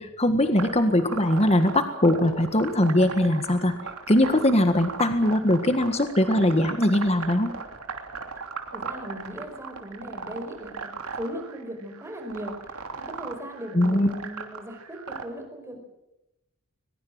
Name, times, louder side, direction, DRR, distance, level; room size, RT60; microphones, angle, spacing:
voice 1, 0.0-3.8 4.1-7.5 13.7-14.1, left 1 dB, 30° left, 8 dB, 1.7 m, -21 dB
sound 1, 0.6-15.2, right 4 dB, 80° right, 3.2 m, -38 dB
voice 2, 8.7-15.8, equal, 10° right, 5 dB, 5.0 m, -38 dB
22.5 x 21.5 x 7.6 m, 0.91 s
head